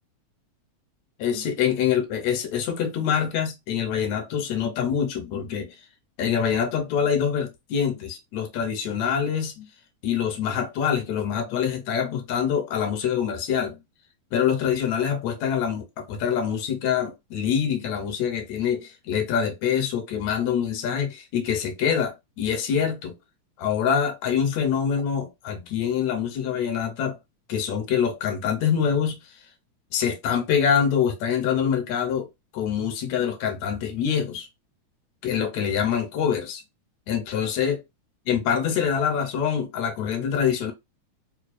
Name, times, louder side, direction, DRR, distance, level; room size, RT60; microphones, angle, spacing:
voice 1, 1.2-5.8 6.2-9.7 10.0-13.8 14.3-23.1 23.6-27.2 27.5-29.2 29.9-32.3 32.5-34.5 35.2-36.6 37.1-37.8 38.3-40.7, left 8 dB, 75° left, 2.0 m, -25 dB
4.7 x 2.2 x 2.5 m
omnidirectional pair, 3.3 m